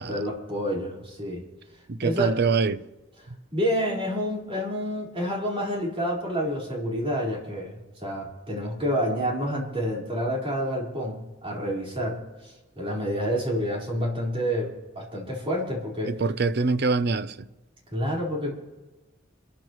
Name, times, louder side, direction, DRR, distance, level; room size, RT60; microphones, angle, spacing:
voice 1, 0.0-1.4 2.0-2.3 3.5-16.1 17.9-18.5, equal, 30° right, 4.5 m, -29 dB
voice 2, 1.9-2.8 16.0-17.5, right 4 dB, 55° right, 0.6 m, -24 dB
27.5 x 13.5 x 3.1 m
head